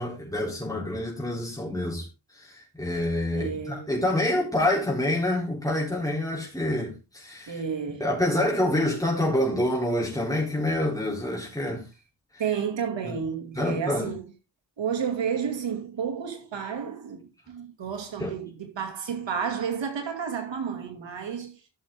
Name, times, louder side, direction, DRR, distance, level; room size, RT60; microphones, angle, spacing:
voice 1, 0.0-2.0 2.4-2.5 2.8-7.5 8.0-11.8 13.1-13.2 13.6-14.1 18.2-18.3, left 1 dB, 10° left, 3.9 m, -27 dB
voice 2, 3.3-3.9 7.5-8.1 12.4-14.3 14.8-21.6, right 7 dB, 80° right, 2.5 m, -31 dB
12.5 x 6.5 x 3.6 m
cardioid pair, 50°, 44 cm